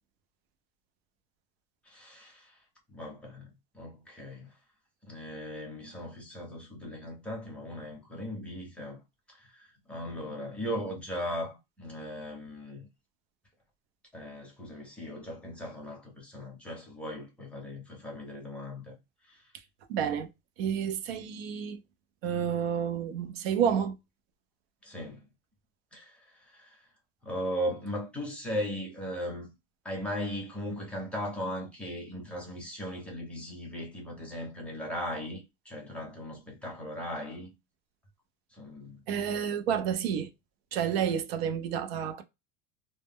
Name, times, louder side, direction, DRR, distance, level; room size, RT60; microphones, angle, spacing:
voice 1, 1.8-2.6 2.9-3.5 3.7-4.5 5.0-9.0 9.3-12.9 14.1-18.9 19.3-19.5 24.8-25.3 25.9-26.8 27.2-29.5 29.8-37.5 38.5-39.0, equal, 5° left, 0.6 m, -38 dB
voice 2, 19.9-20.3 20.6-21.8 22.2-23.9 39.1-40.3 40.7-42.2, right 8 dB, 90° right, 0.6 m, -30 dB
2.2 x 2.0 x 3.4 m
supercardioid pair, 165°, 30 cm